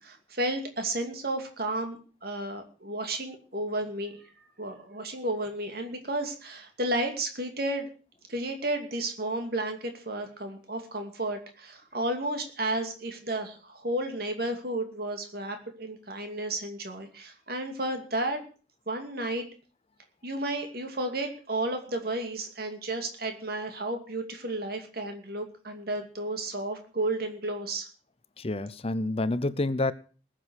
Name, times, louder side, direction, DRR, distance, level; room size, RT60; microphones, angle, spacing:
voice 1, 0.0-4.3 4.6-7.9 8.3-18.4 18.9-19.5 20.2-27.9, right 1 dB, 55° right, 2.5 m, -32 dB
voice 2, 28.4-29.9, left 2 dB, 30° left, 0.6 m, -28 dB
20.0 x 7.6 x 6.4 m
head